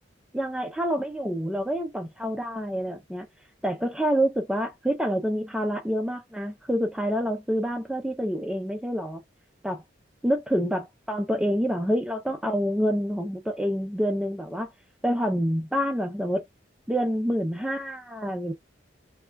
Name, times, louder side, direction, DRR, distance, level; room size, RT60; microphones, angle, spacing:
voice 1, 0.3-3.3 3.6-9.2 9.6-9.8 10.2-14.7 15.0-16.4 16.9-18.5, equal, 5° right, 0.3 m, -27 dB
2.2 x 2.1 x 3.3 m
head